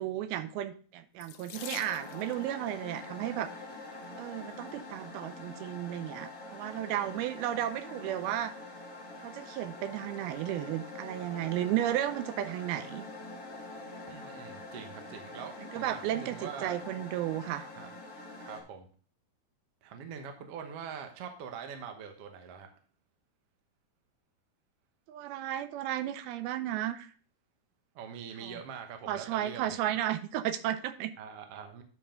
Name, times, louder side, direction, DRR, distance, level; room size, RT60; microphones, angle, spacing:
voice 1, 0.0-3.5 4.2-8.5 9.2-13.0 15.7-17.7 25.1-27.1 28.4-28.6 29.1-31.1, right 12 dB, 85° right, 10 dB, 2.5 m, -34 dB
Water tap faucet / Sink (filling or washing), 1.2-2.4 3.5-3.9 4.6-4.7 5.0-5.1, left 12 dB, 85° left, 1.8 m, -46 dB
sound 1, 1.5-18.6, left 2 dB, 30° left, 1.6 m, -45 dB
voice 2, 14.1-16.8 17.7-17.9 18.4-18.9 19.8-22.7 27.9-30.0 31.2-31.8, right 7 dB, 70° right, 5 dB, 1.4 m, -44 dB
9.5 x 5.5 x 3.8 m, 0.42 s
omnidirectional pair, 4.4 m